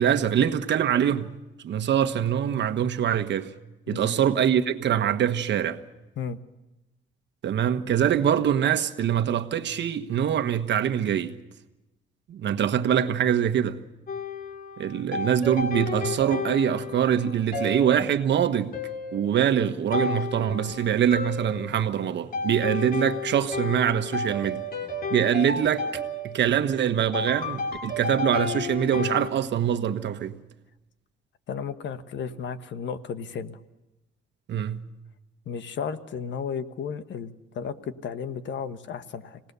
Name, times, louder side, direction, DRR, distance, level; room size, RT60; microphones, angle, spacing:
voice 1, 0.0-3.5 3.9-5.8 7.4-11.4 12.3-13.8 14.8-18.7 19.1-24.6 25.1-25.9 26.2-30.4 34.5-34.9, right 9 dB, 65° right, 1.3 m, -24 dB
voice 2, 3.9-4.2 6.2-6.4 31.5-33.6 35.5-39.4, left 6 dB, 65° left, 1.3 m, -34 dB
sound 1, 14.1-29.3, left 3 dB, 45° left, 3.6 m, -32 dB
27.0 x 18.5 x 6.9 m
cardioid pair, 90°, 20 cm